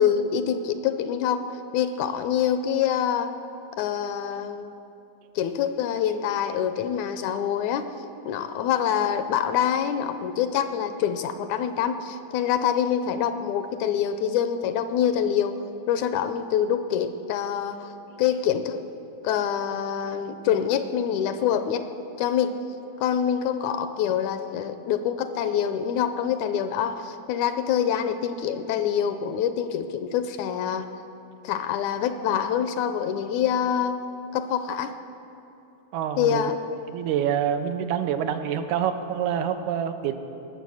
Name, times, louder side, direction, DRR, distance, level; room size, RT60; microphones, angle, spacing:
voice 1, 0.0-1.4 1.7-3.3 3.8-4.8 5.4-7.9 8.3-15.6 15.9-17.8 18.2-18.8 19.2-21.8 22.2-22.5 23.0-30.9 31.4-34.0 34.3-34.9 36.2-36.9, left 9 dB, 80° left, 9 dB, 1.9 m, -25 dB
voice 2, 35.9-36.4 36.9-40.2, right 9 dB, 80° right, 8 dB, 2.0 m, -26 dB
19.0 x 7.2 x 6.2 m, 3.0 s
omnidirectional pair, 3.5 m